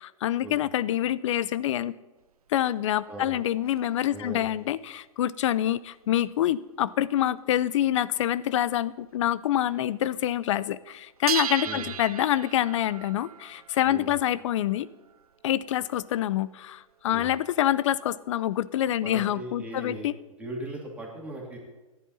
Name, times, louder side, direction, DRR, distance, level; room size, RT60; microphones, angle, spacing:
voice 1, 0.0-1.9 2.5-14.9 15.4-20.1, left 12 dB, 55° left, 19 dB, 0.5 m, -26 dB
sound 1, 2.2-4.1 4.7-6.4 7.0-7.4 7.8-7.9 8.2-8.3 8.5-9.5 9.8-10.4 10.8-18.7, right 8 dB, 90° right, 0.5 m, -39 dB
voice 2, 4.1-4.4 11.6-11.9 13.9-14.1 17.1-17.3 19.0-20.1 20.4-21.6, right 1 dB, 5° right, -3 dB, 2.7 m, -38 dB
14.5 x 10.5 x 4.2 m, 1.1 s
hypercardioid pair, 135°, 19 cm